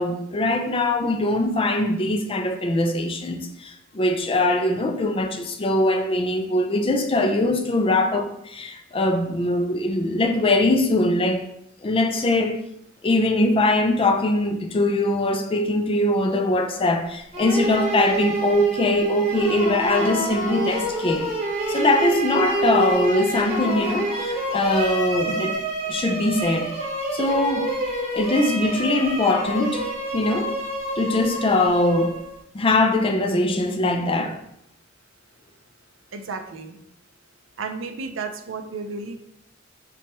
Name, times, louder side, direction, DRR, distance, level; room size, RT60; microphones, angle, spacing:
voice 1, 0.0-11.4 11.8-12.6 13.0-21.3 21.7-25.6 25.9-26.7 27.1-27.7 28.1-29.8 30.1-30.5 31.0-32.1 32.5-34.4, left 2 dB, 25° left, 0.4 m, -22 dB
sound 1, 17.3-32.4, right 1 dB, 30° right, 1.4 m, -27 dB
voice 2, 36.1-36.8 37.6-39.3, right 4 dB, 70° right, 0.5 m, -33 dB
5.8 x 2.3 x 3.0 m
head